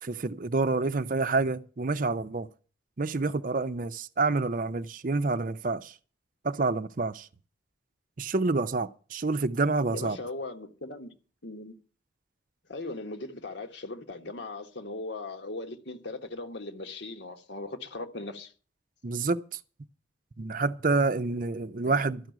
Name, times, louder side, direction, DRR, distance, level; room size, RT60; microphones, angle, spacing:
voice 1, 0.0-2.5 3.0-5.9 6.4-7.3 8.2-10.2 19.0-19.6 20.4-22.2, right 3 dB, 45° right, 0.6 m, -28 dB
voice 2, 9.9-11.1 11.4-11.7 12.7-18.5 21.8-22.1, left 2 dB, 70° left, 1.5 m, -39 dB
13.0 x 6.1 x 9.2 m
head